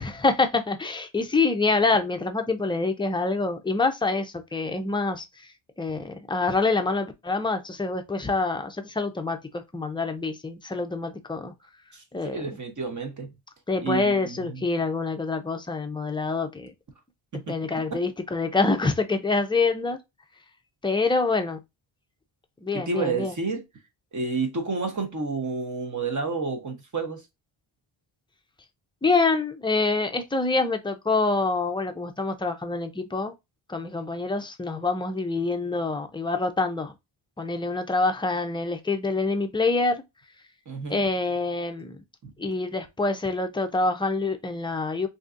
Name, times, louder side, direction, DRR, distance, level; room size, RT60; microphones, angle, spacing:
voice 1, 0.0-5.2 5.8-11.5 12.1-12.4 13.7-16.7 17.3-20.0 20.8-21.6 22.6-23.3 29.0-33.3 33.7-36.9 37.4-40.0 40.9-42.0 42.4-45.1, left 3 dB, 10° left, 0.4 m, -26 dB
voice 2, 11.9-13.3 13.8-14.6 17.3-17.5 22.7-23.6 24.1-27.2 40.7-41.1 42.2-42.3, right 4 dB, 40° right, 1.0 m, -30 dB
3.7 x 2.7 x 2.5 m
wide cardioid pair, 115°, 48 cm